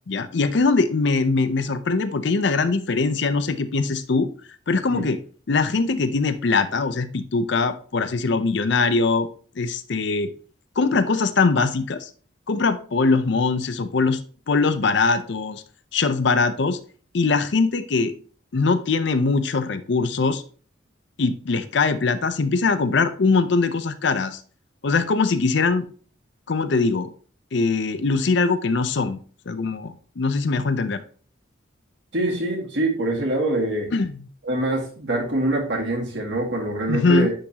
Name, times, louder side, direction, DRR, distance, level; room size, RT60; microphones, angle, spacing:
voice 1, 0.1-4.3 4.7-5.2 5.5-9.3 9.6-10.3 10.8-12.1 12.5-14.2 14.5-15.6 15.9-16.8 17.1-18.1 18.5-20.4 21.2-24.4 24.8-25.9 26.5-27.1 27.5-29.2 29.5-31.0 33.9-34.1 36.9-37.3, left 4 dB, 60° left, 11 dB, 0.5 m, -22 dB
voice 2, 32.1-33.9 34.4-37.3, right 1 dB, 65° right, -1 dB, 2.0 m, -24 dB
10.0 x 3.8 x 2.9 m, 0.41 s
head